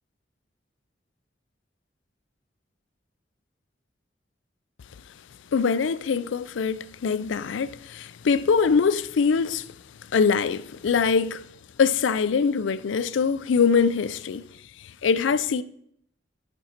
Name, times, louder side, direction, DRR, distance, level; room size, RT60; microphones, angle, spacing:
voice 1, 5.5-9.7 10.1-11.4 11.8-14.4 15.0-15.6, left 5 dB, 80° left, 0.4 m, -23 dB
11.0 x 5.3 x 4.4 m
head